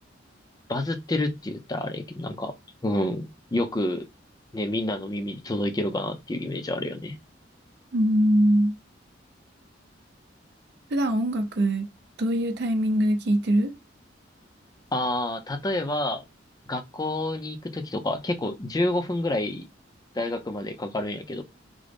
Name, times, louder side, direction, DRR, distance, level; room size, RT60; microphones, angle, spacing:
voice 1, 0.7-2.5 2.8-4.0 4.5-7.1 14.9-16.2 16.7-19.6 20.1-21.4, left 1 dB, 20° left, 0.4 m, -28 dB
voice 2, 7.9-8.7 10.9-11.9 12.2-13.7, equal, 60° right, 0.5 m, -22 dB
3.7 x 2.0 x 3.3 m
head